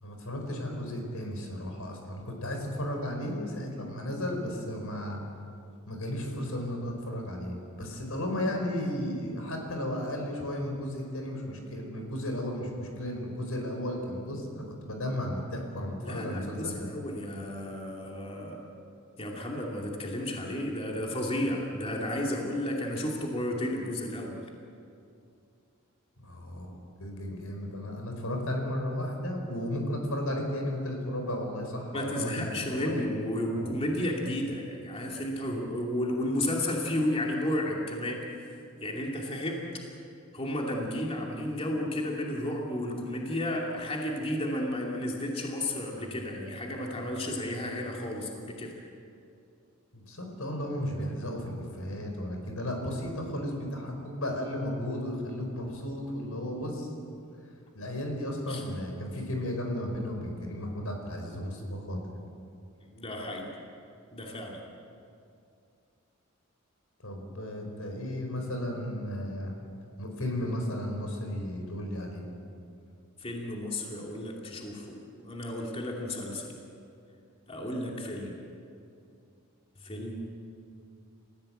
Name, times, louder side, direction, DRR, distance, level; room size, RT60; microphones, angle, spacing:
voice 1, 0.0-5.2 5.9-16.9 26.2-33.1 33.5-33.7 49.9-56.9 57.7-62.0 67.0-69.5 70.0-72.3, left 1 dB, 85° left, 2 dB, 5.2 m, -34 dB
voice 2, 16.0-18.6 19.2-24.4 31.9-38.5 38.8-39.6 40.3-48.7 58.5-58.6 62.9-63.5 64.1-64.6 73.2-76.5 77.5-78.3 79.8-80.3, left 1 dB, 30° left, -1 dB, 2.7 m, -32 dB
29.0 x 16.0 x 7.9 m, 2.5 s
head